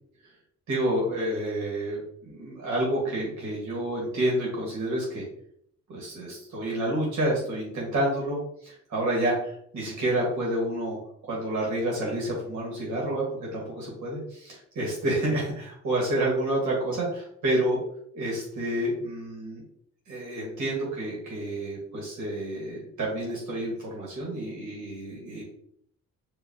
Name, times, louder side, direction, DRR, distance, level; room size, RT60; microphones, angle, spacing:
voice 1, 0.7-5.3 5.9-11.0 11.2-13.3 13.5-17.8 18.1-19.6 20.1-25.4, right 1 dB, 70° right, -4 dB, 1.7 m, -29 dB
4.9 x 2.8 x 2.8 m, 0.67 s
cardioid pair, 90°, 30 cm